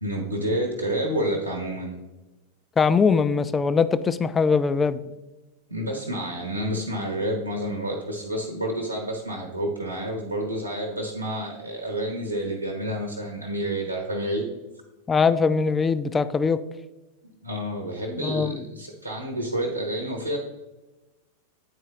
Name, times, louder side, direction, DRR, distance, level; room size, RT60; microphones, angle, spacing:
voice 1, 0.0-2.0 5.7-14.5 17.4-20.4, right 1 dB, 85° right, 0 dB, 1.0 m, -29 dB
voice 2, 2.8-5.0 15.1-16.6 18.2-18.6, left 5 dB, 15° left, 13 dB, 0.3 m, -21 dB
9.6 x 4.6 x 3.1 m, 1.1 s
figure-of-eight pair, 90°, 0 cm